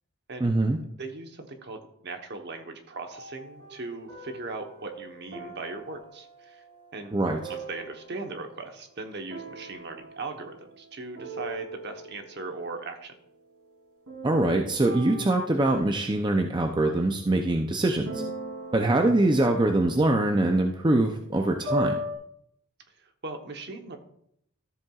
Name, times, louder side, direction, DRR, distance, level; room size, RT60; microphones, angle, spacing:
voice 1, 0.4-0.8 7.1-7.4 14.2-18.2 18.7-22.0, right 2 dB, 20° right, 3 dB, 0.5 m, -23 dB
voice 2, 1.0-6.6 6.9-7.2 7.5-13.1 18.8-19.0 23.0-24.0, right 3 dB, 50° right, 5 dB, 1.0 m, -39 dB
sound 1, 3.1-8.6 9.3-10.9 11.2-12.4 14.1-17.1 18.1-22.2, equal, 85° right, 3.1 m, -39 dB
13.5 x 7.5 x 2.4 m, 0.71 s
head